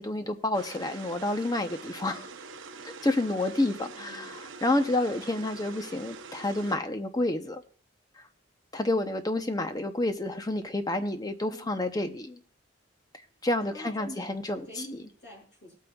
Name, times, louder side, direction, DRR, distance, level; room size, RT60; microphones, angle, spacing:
voice 1, 0.0-2.3 2.8-7.6 8.7-12.4 13.4-14.7, left 2 dB, 20° left, 7 dB, 0.7 m, -29 dB
sound 1, 0.5-6.8, right 4 dB, 75° right, 0.7 m, -44 dB
voice 2, 3.6-4.3 11.5-11.7 13.7-15.8, equal, 60° left, -2 dB, 6.0 m, -46 dB
18.5 x 8.7 x 2.3 m, 0.43 s
head